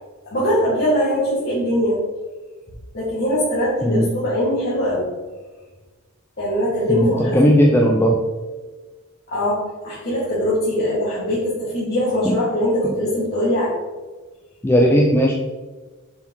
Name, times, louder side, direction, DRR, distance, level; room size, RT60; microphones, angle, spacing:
voice 1, 0.3-2.0 2.9-5.1 6.4-7.6 9.3-9.6 9.8-13.7, equal, 45° left, -9 dB, 2.0 m, -21 dB
voice 2, 6.9-8.2 12.2-12.4 14.6-15.3, equal, 10° left, 0 dB, 0.5 m, -16 dB
7.0 x 4.9 x 3.8 m, 1.3 s
head